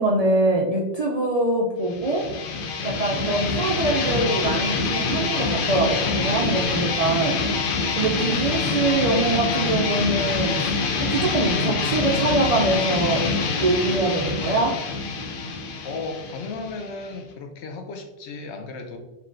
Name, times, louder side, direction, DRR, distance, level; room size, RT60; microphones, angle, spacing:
voice 1, 0.0-2.3 2.8-7.4 8.0-10.5 11.0-13.2 13.6-14.7, right 2 dB, 55° right, -2 dB, 0.4 m, -23 dB
sound 1, 1.9-17.3, left 4 dB, 60° left, 0.6 m, -25 dB
voice 2, 15.8-19.0, left 3 dB, 80° left, 4 dB, 0.9 m, -35 dB
4.6 x 2.9 x 2.5 m, 1.1 s
omnidirectional pair, 1.1 m